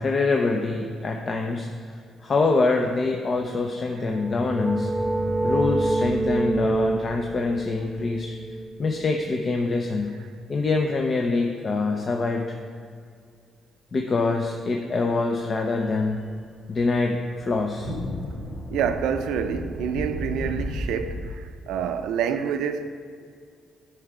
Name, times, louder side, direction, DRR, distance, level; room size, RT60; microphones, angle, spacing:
voice 1, 0.0-1.7 2.2-4.9 5.4-8.3 8.8-10.1 10.5-12.4 13.9-16.2 16.7-17.9, left 3 dB, 40° left, 0.6 m, -25 dB
sound 1, 3.9-9.5, right 2 dB, 15° right, 0.4 m, -27 dB
sound 2, 5.0-8.9 15.8-21.2, left 1 dB, 85° left, 2.1 m, -36 dB
voice 2, 18.7-22.9, right 7 dB, 90° right, 0.5 m, -27 dB
9.8 x 4.5 x 4.9 m
cardioid pair, 90°, 0 cm